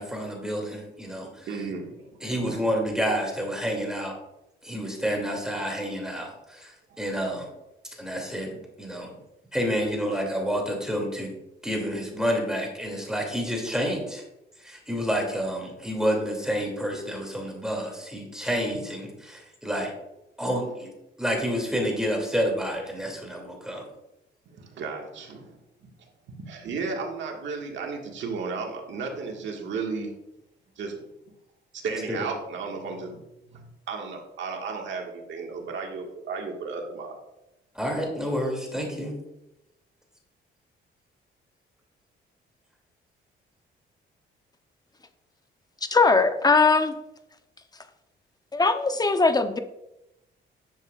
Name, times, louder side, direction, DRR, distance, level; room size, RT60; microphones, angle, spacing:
voice 1, 0.0-1.5 2.2-4.1 4.6-6.7 7.0-7.5 8.0-9.1 9.5-11.3 11.6-14.2 14.6-19.9 20.4-20.9 21.2-23.8 32.1-32.3 37.7-39.1, equal, 5° right, 0 dB, 2.7 m, -29 dB
voice 2, 1.5-2.6 7.3-7.4 24.5-25.9 26.4-30.1 30.8-31.0 31.7-33.2 33.5-37.2, right 4 dB, 70° right, 1 dB, 1.7 m, -34 dB
voice 3, 45.9-46.9 48.5-49.6, left 3 dB, 20° left, 9 dB, 0.7 m, -20 dB
10.5 x 7.1 x 2.5 m, 0.90 s
cardioid pair, 90°, 20 cm